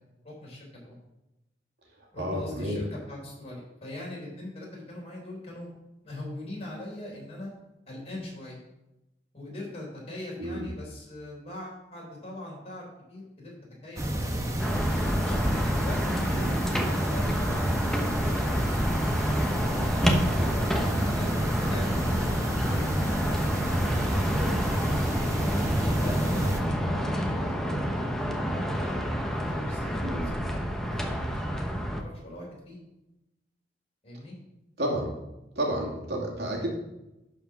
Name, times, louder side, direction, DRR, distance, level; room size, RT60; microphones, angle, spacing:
voice 1, 0.2-1.0 2.1-5.7 6.0-7.5 7.9-8.6 9.3-13.5 13.8-14.4 15.2-17.7 18.2-18.6 19.6-20.3 20.6-21.3 21.6-24.6 25.2-27.8 28.4-30.5 30.9-32.8 34.0-34.3, left 1 dB, 35° left, -3 dB, 4.1 m, -41 dB
voice 2, 2.2-2.8 10.4-10.7 16.4-16.6 20.4-20.7 30.0-30.3 34.8-35.1 35.6-36.7, right 1 dB, 70° right, -2 dB, 2.5 m, -31 dB
sound 1, 14.0-26.6, right 1 dB, 20° right, 1.0 m, -29 dB
sound 2, 14.6-32.0, equal, 5° left, 0.9 m, -29 dB
11.5 x 5.0 x 5.9 m, 0.94 s
head